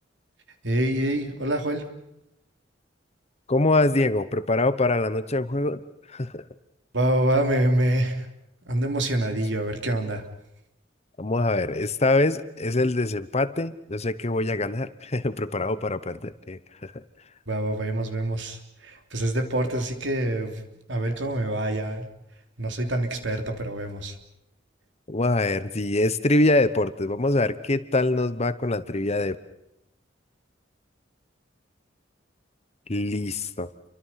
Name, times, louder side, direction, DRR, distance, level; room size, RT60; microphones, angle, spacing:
voice 1, 0.6-1.8 6.9-8.3 8.6-10.3 17.5-20.6 20.9-22.1 22.6-24.2, right 1 dB, 70° right, 5 dB, 3.3 m, -26 dB
voice 2, 3.5-5.8 6.1-6.4 11.2-17.0 25.1-29.4 32.9-33.7, left 2 dB, 35° left, 13 dB, 1.1 m, -24 dB
29.5 x 24.0 x 5.8 m, 0.81 s
head